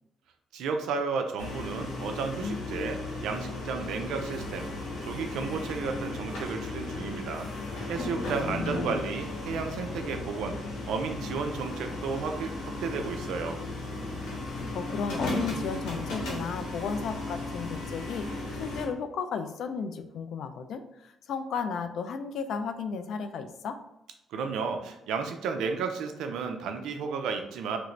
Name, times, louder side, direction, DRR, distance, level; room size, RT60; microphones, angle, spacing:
voice 1, 0.5-4.7 5.0-7.5 7.9-10.6 10.8-13.6 24.3-27.8, right 5 dB, 85° right, 5 dB, 0.4 m, -33 dB
sound 1, 1.4-18.9, left 2 dB, 90° left, 0.9 m, -35 dB
voice 2, 8.4-9.0 14.5-18.3 18.6-23.8, left 6 dB, 70° left, 9 dB, 0.3 m, -34 dB
2.9 x 2.5 x 3.1 m, 0.85 s
cardioid pair, 90°, 0 cm